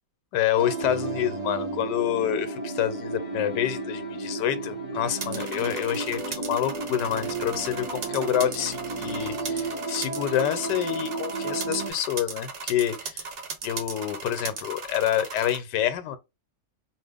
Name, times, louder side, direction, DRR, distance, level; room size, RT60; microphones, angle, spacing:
voice 1, 0.3-13.3 13.6-16.2, left 10 dB, 80° left, 1.2 m, -27 dB
sound 1, 0.6-11.9, right 3 dB, 35° right, 0.6 m, -33 dB
sound 2, 0.9-10.1, left 5 dB, 55° left, 0.9 m, -45 dB
sound 3, 5.2-15.6, right 4 dB, 70° right, 1.5 m, -37 dB
2.9 x 2.5 x 3.3 m
omnidirectional pair, 1.9 m